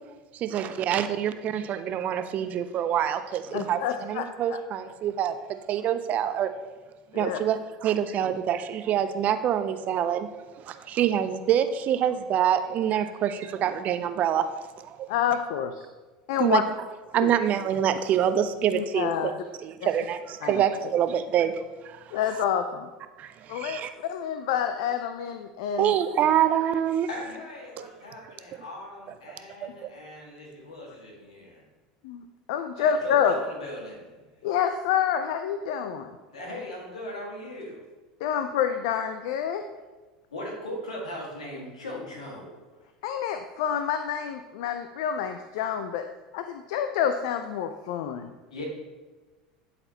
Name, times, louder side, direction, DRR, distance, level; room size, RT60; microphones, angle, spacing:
voice 1, 0.3-5.4 5.7-6.5 7.1-10.3 10.6-15.1 16.4-16.6 17.1-19.3 19.6-22.2 23.2-23.9 25.8-27.1 29.6-29.9, right 9 dB, 45° right, 10 dB, 0.5 m, -26 dB
voice 2, 3.5-4.6 7.1-7.4 15.1-15.8 16.3-16.6 17.2-17.3 18.7-19.3 19.8-19.9 20.4-20.6 22.1-22.9 23.5-25.9 32.0-32.2 32.5-33.4 34.4-36.1 38.2-39.6 43.0-46.0 46.3-48.3, left 8 dB, 70° left, 8 dB, 0.4 m, -28 dB
voice 3, 27.1-31.6 32.8-34.2 36.3-37.8 40.3-42.6 48.5-48.6, left 1 dB, 90° left, -2 dB, 1.7 m, -39 dB
11.0 x 4.2 x 2.9 m, 1.3 s
hypercardioid pair, 85°, 3 cm